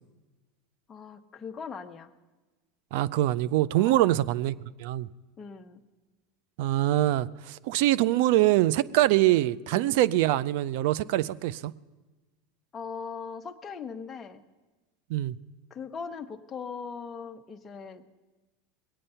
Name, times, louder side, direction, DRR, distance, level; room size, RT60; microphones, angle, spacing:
voice 1, 0.9-2.1 3.8-4.2 5.4-5.8 9.2-9.4 9.7-10.0 12.7-14.4 15.7-18.0, left 5 dB, 25° left, 0.9 m, -40 dB
voice 2, 2.9-4.5 4.8-5.1 6.6-11.7 15.1-15.4, right 15 dB, 65° right, 0.4 m, -24 dB
21.0 x 8.8 x 5.6 m
supercardioid pair, 120°, 0 cm